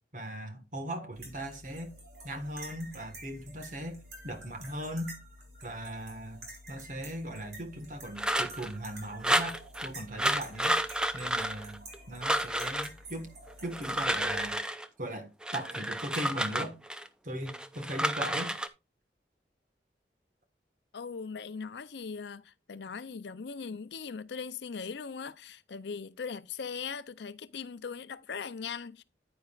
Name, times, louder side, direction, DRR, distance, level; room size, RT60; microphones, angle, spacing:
voice 1, 0.1-2.0 2.2-5.1 5.6-10.8 11.1-13.3 13.6-14.6 15.0-16.8 17.2-18.5, right 1 dB, 45° right, 1.5 m, -39 dB
sound 1, 1.1-14.6, right 1 dB, 65° right, 4.2 m, -49 dB
sound 2, 8.2-8.7 9.2-9.9 10.2-12.0 12.2-12.9 13.6-14.9 15.4-17.1 17.5-18.7, right 1 dB, 5° right, 0.5 m, -30 dB
voice 2, 20.9-29.0, left 5 dB, 75° left, 0.5 m, -40 dB
9.5 x 9.4 x 2.4 m
head